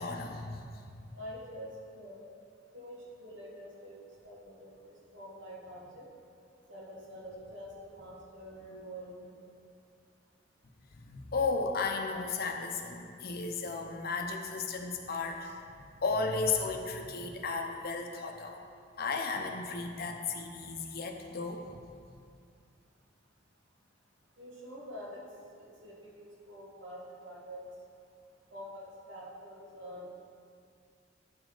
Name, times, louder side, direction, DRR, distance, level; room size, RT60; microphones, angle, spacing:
voice 1, 0.0-1.2 10.9-15.6 15.9-18.6 19.0-21.7, left 4 dB, 55° left, 4 dB, 0.7 m, -34 dB
voice 2, 1.1-2.3 2.7-6.0 6.7-9.3 24.4-25.2 25.6-27.7 28.5-30.2, equal, 70° right, -4 dB, 1.7 m, -46 dB
10.5 x 5.0 x 3.9 m, 2.3 s
head